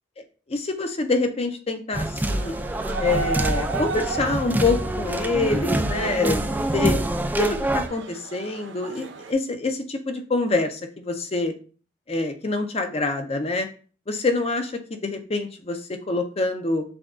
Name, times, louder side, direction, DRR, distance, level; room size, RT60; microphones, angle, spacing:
voice 1, 0.5-2.6 3.0-6.4 6.7-7.0 7.4-11.5 12.1-13.7 14.1-16.8, left 3 dB, 35° left, 7 dB, 0.6 m, -26 dB
sound 1, 1.9-7.9, right 1 dB, 10° right, 0.3 m, -25 dB
sound 2, 2.2-9.3, right 4 dB, 85° right, 0.7 m, -35 dB
6.1 x 2.3 x 3.5 m, 0.38 s
head